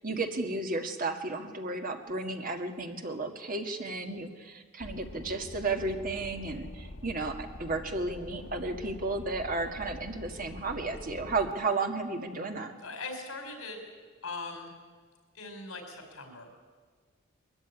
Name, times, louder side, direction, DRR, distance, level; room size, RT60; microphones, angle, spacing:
voice 1, 0.0-12.7, right 3 dB, 40° right, 5 dB, 1.8 m, -33 dB
sound 1, 4.8-11.5, left 1 dB, 65° left, 1.3 m, -45 dB
voice 2, 12.8-13.8 14.2-14.7 15.3-16.6, left 3 dB, 80° left, 4 dB, 5.1 m, -40 dB
22.0 x 14.5 x 10.0 m, 1.6 s
head